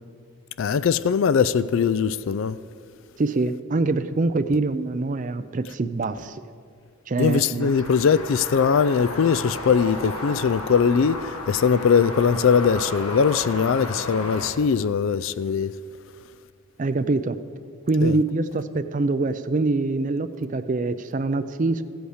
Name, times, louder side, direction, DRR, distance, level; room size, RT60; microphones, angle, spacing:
voice 1, 0.6-2.6 7.2-15.8 18.0-18.2, left 6 dB, 60° left, 0.3 m, -21 dB
voice 2, 3.2-6.4 7.1-7.7 16.8-17.4 17.9-21.8, right 3 dB, 35° right, 0.4 m, -24 dB
sound 1, 7.6-14.5, left 2 dB, 80° left, 1.5 m, -34 dB
15.5 x 8.0 x 4.9 m
head